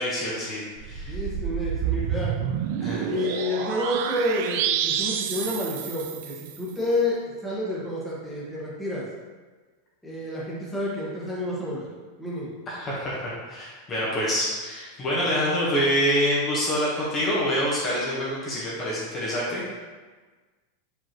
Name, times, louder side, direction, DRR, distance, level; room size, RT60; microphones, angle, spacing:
voice 1, 0.0-1.2 2.8-3.3 12.7-19.8, equal, 25° left, -7 dB, 1.2 m, -26 dB
sound 1, 0.8-6.6, right 9 dB, 50° right, 0.4 m, -29 dB
voice 2, 1.0-2.3 3.0-9.1 10.0-11.9 12.2-12.5, left 1 dB, 5° left, -7 dB, 1.4 m, -29 dB
6.0 x 5.3 x 3.0 m, 1.4 s
supercardioid pair, 165°, 0 cm